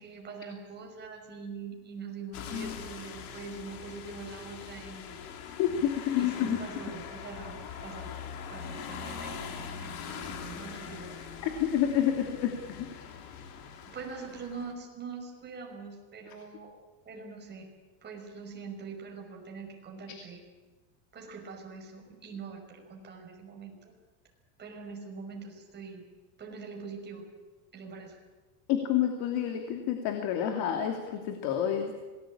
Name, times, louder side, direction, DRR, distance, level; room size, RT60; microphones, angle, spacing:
voice 1, 0.0-5.2 6.2-8.1 8.5-11.4 13.9-16.7 17.0-17.7 18.0-20.4 21.1-23.8 24.6-26.0 26.4-27.3 27.7-28.2, right 5 dB, 25° right, 1 dB, 5.7 m, -43 dB
sound 1, 2.3-14.7, left 7 dB, 80° left, 3.6 m, -42 dB
voice 2, 5.6-6.6 11.4-13.0 16.3-16.4 28.7-32.0, left 10 dB, 55° left, 5 dB, 2.9 m, -29 dB
26.5 x 19.5 x 8.7 m, 1.2 s
cardioid pair, 160°, 44 cm